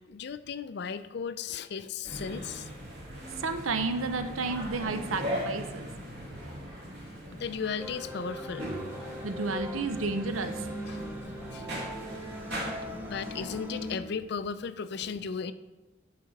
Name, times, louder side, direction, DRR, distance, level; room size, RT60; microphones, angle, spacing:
voice 1, 0.1-2.7 7.3-8.7 10.8-11.0 11.5-11.7 12.9-15.5, left 6 dB, 55° left, 13 dB, 0.4 m, -36 dB
sound 1, 2.0-13.6, equal, 55° right, 2.1 m, -39 dB
voice 2, 3.4-5.9 9.2-10.7, right 3 dB, 85° right, 9 dB, 0.7 m, -31 dB
sound 2, 7.8-14.0, equal, 10° right, 0.6 m, -40 dB
11.5 x 5.0 x 4.0 m, 1.1 s
head